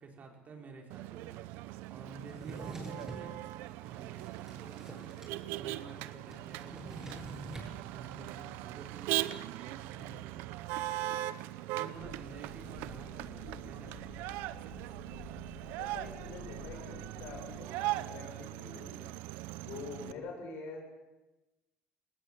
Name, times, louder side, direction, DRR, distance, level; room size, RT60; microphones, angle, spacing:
voice 1, 0.0-3.4 3.8-5.1 5.5-10.5 11.7-14.3, right 4 dB, 50° right, 1 dB, 4.7 m, -51 dB
Motor vehicle (road), 0.9-20.1, right 16 dB, 85° right, 0.7 m, -40 dB
Drawer open or close, 2.2-3.3 3.9-5.4 5.6-5.7 5.9-7.7, right 2 dB, 15° right, 7.7 m, -46 dB
sound 1, 12.0-17.6, left 7 dB, 65° left, 3.2 m, -52 dB
voice 2, 15.7-19.1 19.6-20.8, left 4 dB, 80° left, 2 dB, 6.8 m, -45 dB
19.5 x 18.5 x 7.3 m, 1.1 s
cardioid pair, 90°, 3 cm